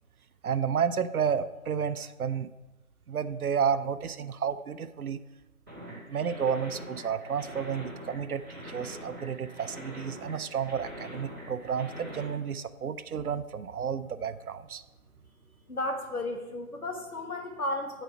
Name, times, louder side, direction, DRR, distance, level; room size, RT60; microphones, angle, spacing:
voice 1, 0.4-2.5 3.1-5.2 5.9-14.8, right 7 dB, 75° right, 12 dB, 0.5 m, -31 dB
sound 1, 5.7-12.3, equal, 15° right, 1.3 m, -44 dB
voice 2, 15.7-18.0, left 1 dB, 80° left, 3 dB, 1.5 m, -33 dB
9.2 x 4.1 x 4.6 m, 1.1 s
figure-of-eight pair, 165°, 44 cm